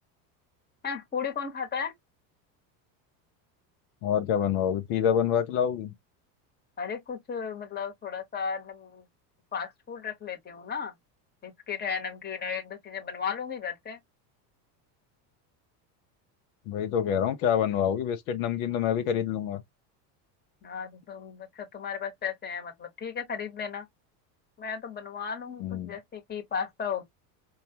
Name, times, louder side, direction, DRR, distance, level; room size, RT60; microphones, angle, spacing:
voice 1, 0.8-1.9 6.8-9.1 9.5-10.9 11.4-14.0 20.6-23.8 24.6-27.0, left 6 dB, 20° left, 1.1 m, -35 dB
voice 2, 4.0-5.9 16.7-19.6 25.6-25.9, left 9 dB, 65° left, 0.7 m, -27 dB
4.4 x 2.3 x 2.8 m
supercardioid pair, 110°, 49 cm